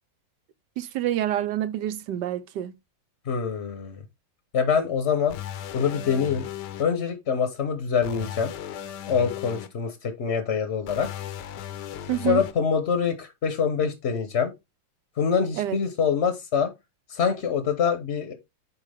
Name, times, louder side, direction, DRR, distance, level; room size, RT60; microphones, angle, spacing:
voice 1, 0.8-2.7 12.1-12.4 15.6-15.8, right 12 dB, 75° right, 1.2 m, -27 dB
voice 2, 3.3-4.0 4.5-5.4 5.7-6.4 6.8-8.5 9.1-11.1 12.2-14.5 15.2-16.7 17.1-18.3, left 6 dB, 45° left, 1.0 m, -25 dB
sound 1, 5.3-6.8 8.0-9.7 10.9-12.5, left 10 dB, 70° left, 1.3 m, -36 dB
8.6 x 4.8 x 3.4 m
omnidirectional pair, 2.1 m